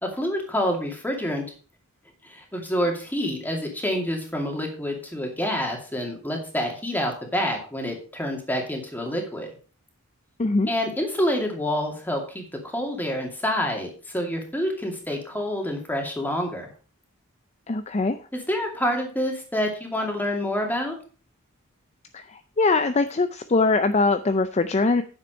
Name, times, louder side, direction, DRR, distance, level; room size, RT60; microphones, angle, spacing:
voice 1, 0.0-1.5 2.3-9.5 10.7-16.7 18.5-21.0, equal, 10° left, 2 dB, 2.4 m, -27 dB
voice 2, 10.4-10.7 17.7-18.2 22.1-25.0, left 3 dB, 30° left, 10 dB, 0.5 m, -22 dB
9.8 x 7.3 x 5.2 m, 0.38 s
head